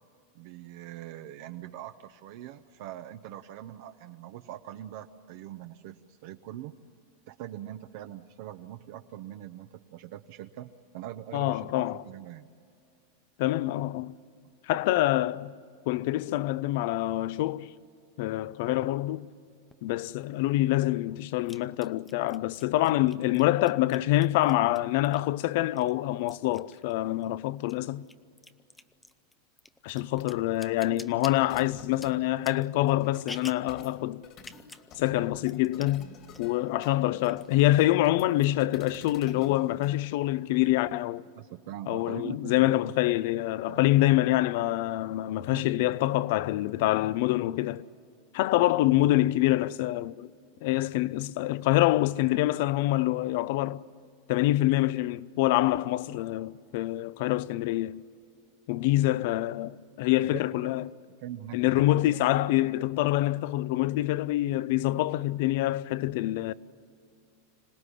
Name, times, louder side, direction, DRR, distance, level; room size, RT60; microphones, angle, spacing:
voice 1, 0.3-6.7 7.3-12.5 41.3-42.9 43.7-43.9 45.5-46.0 60.3-60.7 61.2-62.2, right 12 dB, 60° right, 0.8 m, -43 dB
voice 2, 11.3-12.0 13.4-14.1 14.7-15.5 15.9-17.7 18.2-19.3 19.8-28.1 29.8-34.2 35.0-36.1 36.4-41.2 41.9-47.9 48.3-50.3 50.6-53.8 54.3-58.0 58.7-60.9 61.5-66.5, left 16 dB, 60° left, 0.6 m, -26 dB
sound 1, 19.7-19.8 21.5-25.4 25.8-27.3 27.6-33.7 34.4-34.9 35.2-35.3 35.4-36.0 36.3-36.9 37.2-38.1, left 2 dB, 10° left, 0.6 m, -48 dB
sound 2, 31.4-40.0, left 6 dB, 40° left, 2.1 m, -51 dB
26.0 x 17.5 x 10.0 m
supercardioid pair, 140°, 0 cm